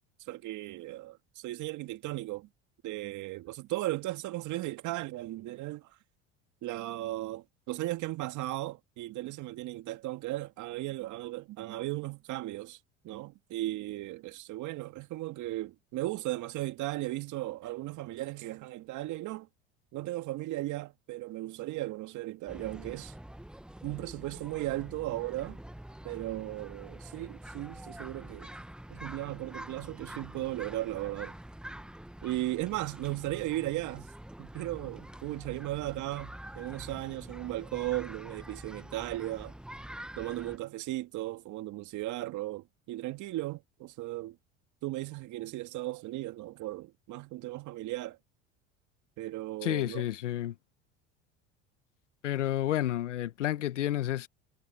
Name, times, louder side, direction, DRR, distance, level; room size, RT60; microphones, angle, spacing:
voice 1, 0.2-2.5 2.8-6.0 6.6-12.8 13.0-19.5 19.9-23.1 23.8-25.6 26.0-28.5 28.9-31.3 32.2-34.1 34.4-39.5 40.2-44.4 44.8-48.2 49.2-50.1, right 17 dB, 55° right, 2.1 m, -36 dB
sound 1, 22.5-40.6, right 1 dB, ahead, 1.0 m, -46 dB
voice 2, 49.6-50.5 52.2-54.3, left 13 dB, 90° left, 1.1 m, -30 dB
hypercardioid pair, 80°, 35 cm